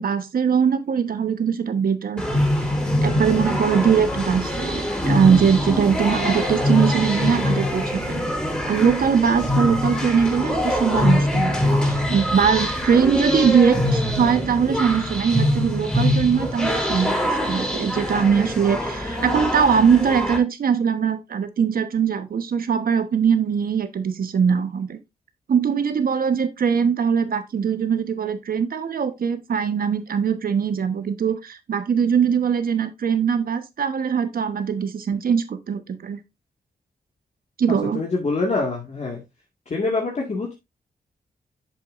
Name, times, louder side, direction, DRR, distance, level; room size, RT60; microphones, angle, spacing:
voice 1, 0.0-2.5 3.0-8.2 8.7-17.2 17.4-25.0 25.5-36.2 37.6-38.0, right 7 dB, 70° right, 1.2 m, -21 dB
sound 1, 2.2-20.4, left 1 dB, 5° left, 3.6 m, -23 dB
voice 2, 37.9-39.2 39.7-40.5, left 3 dB, 45° left, 2.0 m, -25 dB
8.2 x 7.0 x 2.6 m
cardioid pair, 85°, 16 cm